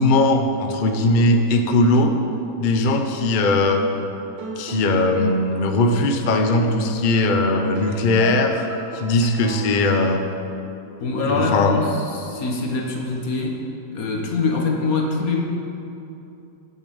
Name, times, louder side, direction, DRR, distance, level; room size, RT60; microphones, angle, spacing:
voice 1, 0.0-2.1 2.6-3.8 4.6-8.7 8.9-10.2 11.3-11.8, left 2 dB, 85° left, 5 dB, 0.4 m, -19 dB
sound 1, 4.1-10.1, right 3 dB, 70° right, 1.6 m, -37 dB
voice 2, 11.0-13.6 13.9-15.4, left 3 dB, 50° left, 0 dB, 1.5 m, -24 dB
8.6 x 6.7 x 8.6 m, 2.8 s
omnidirectional pair, 2.1 m